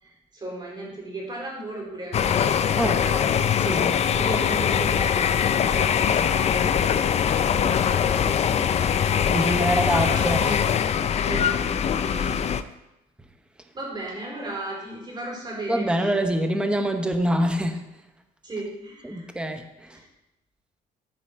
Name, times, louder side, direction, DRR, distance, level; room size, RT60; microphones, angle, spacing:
voice 1, 0.0-3.3 4.1-10.6 11.3-12.2 13.7-15.9 18.4-19.4 19.9-20.1, right 2 dB, 25° right, -2 dB, 3.8 m, -36 dB
sound 1, 2.1-12.6, left 8 dB, 40° left, 0.5 m, -22 dB
voice 2, 3.7-4.0 9.3-10.6 11.2-11.3 12.2-12.4 15.7-17.8 19.0-20.0, equal, 5° right, 6 dB, 0.9 m, -25 dB
sound 2, 14.2-14.9 15.7-15.8 16.0-16.2, left 1 dB, 20° left, 1.7 m, -47 dB
14.0 x 4.8 x 4.4 m, 0.93 s
cardioid pair, 110°, 17 cm